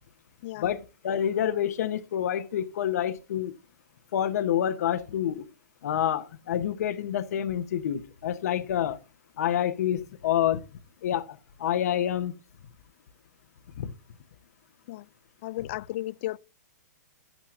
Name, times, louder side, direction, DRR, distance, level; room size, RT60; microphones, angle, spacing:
voice 1, 0.6-3.5 4.1-5.4 5.8-9.0 9.4-10.6 11.0-12.3 13.8-13.9, left 10 dB, 60° left, 0.8 m, -28 dB
voice 2, 15.4-16.4, left 16 dB, 40° left, 0.3 m, -34 dB
11.0 x 8.9 x 2.5 m
hypercardioid pair, 150°, 9 cm